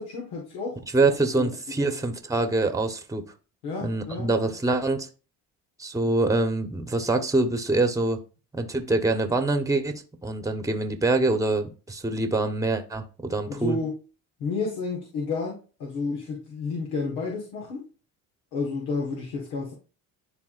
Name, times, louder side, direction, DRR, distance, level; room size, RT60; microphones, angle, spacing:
voice 1, 0.0-0.8 1.1-1.5 1.8-2.0 3.6-4.3 13.5-14.0 14.4-17.8 18.5-19.7, left 4 dB, 85° left, 1.6 m, -31 dB
voice 2, 0.9-3.3 3.8-5.1 5.8-8.2 8.5-13.8, right 2 dB, 10° right, 1.1 m, -25 dB
10.5 x 3.5 x 2.5 m
supercardioid pair, 85°, 36 cm